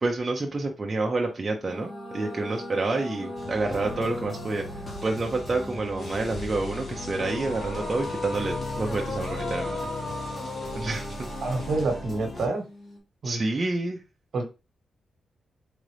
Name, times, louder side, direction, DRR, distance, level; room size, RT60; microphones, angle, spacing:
voice 1, 0.0-9.8 10.7-11.3 13.2-14.0, right 3 dB, 25° right, 1 dB, 0.6 m, -28 dB
sound 1, 1.6-13.0, left 2 dB, 85° left, 2.7 m, -37 dB
sound 2, 3.4-12.5, left 2 dB, 30° left, 0.8 m, -38 dB
sound 3, 6.0-11.8, left 1 dB, 50° left, 1.5 m, -49 dB
voice 2, 11.4-12.6 13.2-13.4 14.3-14.4, right 2 dB, 55° right, 4 dB, 1.2 m, -27 dB
3.8 x 3.7 x 3.3 m, 0.29 s
wide cardioid pair, 155°, 0 cm